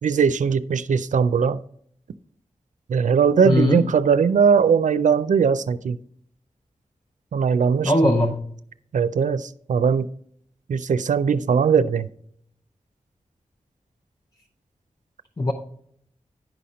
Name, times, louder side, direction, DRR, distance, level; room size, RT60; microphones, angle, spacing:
voice 1, 0.0-1.6 2.9-6.0 7.3-7.9 8.9-10.1 10.7-12.1, right 6 dB, 85° right, 14 dB, 0.4 m, -20 dB
voice 2, 3.4-3.9 7.8-8.4 15.4-15.5, left 1 dB, 30° left, 4 dB, 0.7 m, -19 dB
10.5 x 4.2 x 5.0 m, 0.65 s
wide cardioid pair, 75°, 13 cm